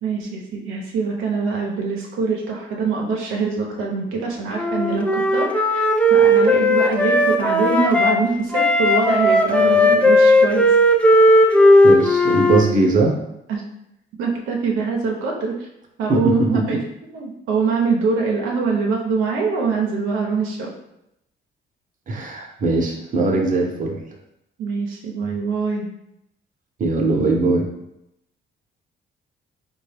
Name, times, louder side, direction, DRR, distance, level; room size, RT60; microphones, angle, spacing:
voice 1, 0.0-5.5 5.7-5.9 6.1-10.7 13.5-13.6 14.2-15.7 16.0-16.8 17.1-20.7 24.6-25.9, right 4 dB, 90° right, -1 dB, 0.6 m, -23 dB
Wind instrument woodwind instrument, 4.6-8.2 8.5-12.7, left 1 dB, 5° left, 0.4 m, -15 dB
voice 2, 11.8-13.1 16.1-16.2 22.1-24.0 26.8-27.7, right 3 dB, 40° right, 0 dB, 0.8 m, -20 dB
3.7 x 2.3 x 3.3 m, 0.82 s
cardioid pair, 90°, 20 cm